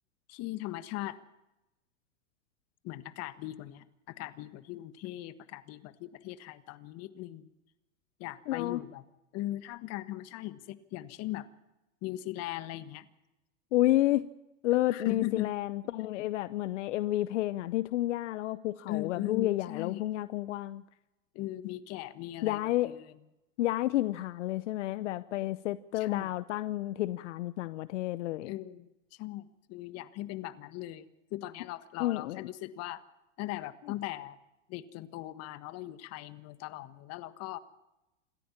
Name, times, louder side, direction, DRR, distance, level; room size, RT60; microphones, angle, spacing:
voice 1, 0.3-1.2 2.8-7.5 8.2-9.0 9.3-11.5 12.0-13.1 14.9-15.5 18.9-20.0 21.3-23.1 25.9-26.3 28.4-33.0 33.4-34.4 34.7-37.6, left 15 dB, 40° left, 14 dB, 1.4 m, -39 dB
voice 2, 8.5-8.8 13.7-14.3 14.6-20.8 22.4-22.9 23.6-28.5 32.0-32.4, left 15 dB, 65° left, 16 dB, 0.8 m, -30 dB
27.0 x 14.0 x 7.3 m, 0.97 s
hypercardioid pair, 120°, 38 cm